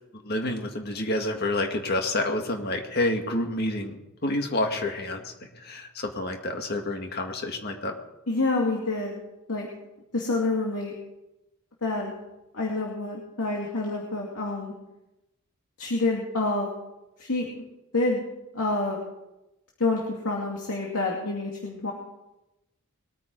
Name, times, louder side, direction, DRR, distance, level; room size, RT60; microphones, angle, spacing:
voice 1, 0.1-8.0, left 1 dB, 45° left, 4 dB, 1.9 m, -29 dB
voice 2, 8.3-9.2 9.5-9.7 10.1-10.9 11.8-12.1 12.5-14.7 15.8-16.7 17.2-17.6 17.9-18.2 18.5-19.0 19.8-21.9, left 2 dB, 80° left, -2 dB, 2.5 m, -27 dB
21.5 x 9.5 x 4.7 m, 0.93 s
head